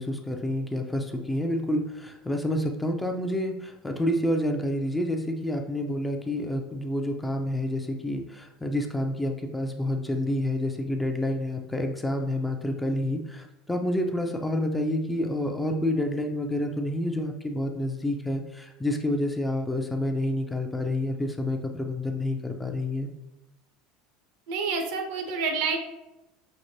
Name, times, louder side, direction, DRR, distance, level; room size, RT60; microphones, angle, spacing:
voice 1, 0.0-23.1, left 1 dB, 10° left, 3 dB, 0.5 m, -28 dB
voice 2, 24.5-25.8, right 4 dB, 60° right, 4 dB, 0.6 m, -28 dB
5.3 x 2.8 x 2.7 m, 0.96 s
figure-of-eight pair, 70°, 0 cm